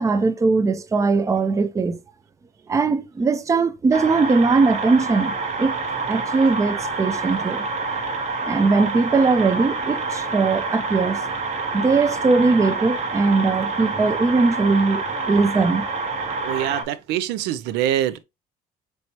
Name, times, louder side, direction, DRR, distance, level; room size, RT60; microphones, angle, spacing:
voice 1, 0.0-2.0 2.7-5.8 6.0-7.7 8.4-11.2 11.7-15.8, right 4 dB, 20° right, 0.4 m, -20 dB
sound 1, 3.9-16.8, right 3 dB, 40° right, 0.9 m, -27 dB
voice 2, 16.4-18.2, right 12 dB, 90° right, 0.4 m, -24 dB
4.3 x 3.3 x 2.8 m
cardioid pair, 110°, 17 cm